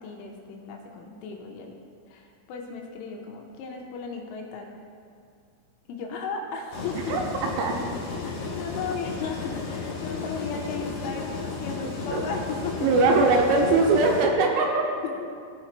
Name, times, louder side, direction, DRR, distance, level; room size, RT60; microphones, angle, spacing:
voice 1, 0.0-1.8 2.1-4.7 5.9-7.2 8.2-13.2 15.0-15.3, left 5 dB, 80° left, 1 dB, 3.1 m, -35 dB
sound 1, 6.7-14.2, left 4 dB, 55° left, 2.3 m, -33 dB
voice 2, 12.8-14.9, right 3 dB, 85° right, 1 dB, 3.1 m, -21 dB
17.0 x 5.8 x 3.0 m, 2.3 s
omnidirectional pair, 5.9 m